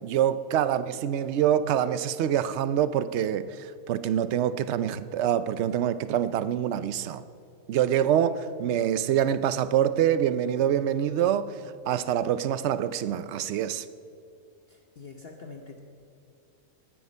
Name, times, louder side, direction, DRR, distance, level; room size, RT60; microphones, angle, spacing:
voice 1, 0.0-7.2 7.7-13.8, right 10 dB, 65° right, 0.7 m, -25 dB
voice 2, 14.7-15.9, left 4 dB, 45° left, 1.0 m, -45 dB
19.0 x 9.4 x 5.5 m
omnidirectional pair, 1.6 m